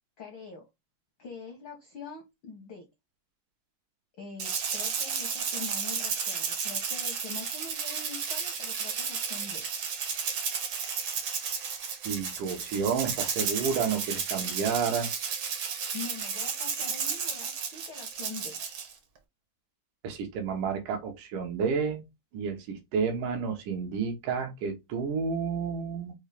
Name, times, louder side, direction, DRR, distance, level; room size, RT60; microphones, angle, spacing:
voice 1, 0.2-0.6 1.2-2.9 4.2-9.6 15.9-18.6, left 5 dB, 75° left, 1.1 m, -44 dB
Rattle (instrument), 4.4-18.9, right 6 dB, 65° right, 1.2 m, -33 dB
voice 2, 12.1-15.1 20.0-22.0 22.3-26.1, right 6 dB, 85° right, 2.6 m, -30 dB
6.0 x 2.5 x 3.3 m
omnidirectional pair, 3.6 m